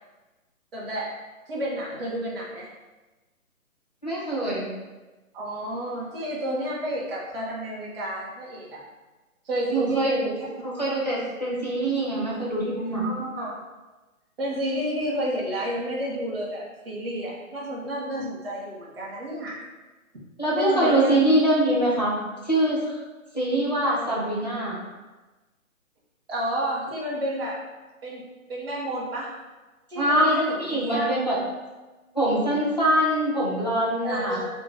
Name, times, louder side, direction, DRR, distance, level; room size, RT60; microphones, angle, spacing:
voice 1, 0.7-1.1 1.5-2.7 5.3-8.8 9.4-10.4 13.0-13.6 14.4-19.6 20.5-21.3 26.3-27.6 28.0-28.2 28.5-29.3 29.9-31.0 34.0-34.4, right 1 dB, 45° right, -5 dB, 0.5 m, -30 dB
voice 2, 4.0-4.7 9.7-10.1 10.6-13.0 20.4-22.2 22.4-23.0 23.3-24.8 29.9-31.4 32.1-34.4, right 1 dB, 35° left, -6 dB, 0.4 m, -23 dB
2.5 x 2.1 x 3.0 m, 1.2 s
hypercardioid pair, 170°, 42 cm